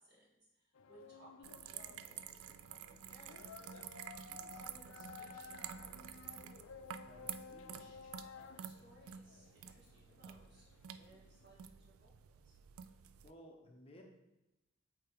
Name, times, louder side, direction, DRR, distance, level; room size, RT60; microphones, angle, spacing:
voice 1, 0.0-6.6 7.8-12.5, right 2 dB, 50° right, -5 dB, 1.8 m, -65 dB
sound 1, 0.7-11.7, left 5 dB, 70° left, 0.4 m, -56 dB
sound 2, 1.4-13.3, right 9 dB, 85° right, 0.3 m, -50 dB
voice 2, 7.1-8.0 13.2-14.0, equal, 25° left, 1 dB, 0.6 m, -58 dB
8.2 x 3.4 x 3.5 m, 0.98 s
head